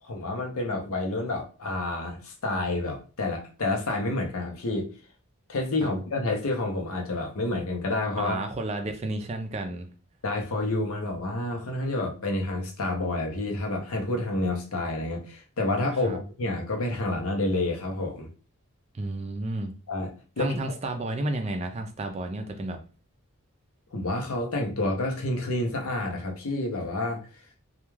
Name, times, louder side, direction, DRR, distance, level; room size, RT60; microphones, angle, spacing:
voice 1, 0.0-4.9 5.5-8.5 10.2-18.3 19.9-20.1 20.4-20.6 23.9-27.2, left 2 dB, 80° left, 3 dB, 0.7 m, -29 dB
voice 2, 8.2-9.9 16.0-16.2 18.9-19.7 20.4-22.8, right 2 dB, 30° right, 6 dB, 0.3 m, -31 dB
2.3 x 2.2 x 3.1 m, 0.36 s
head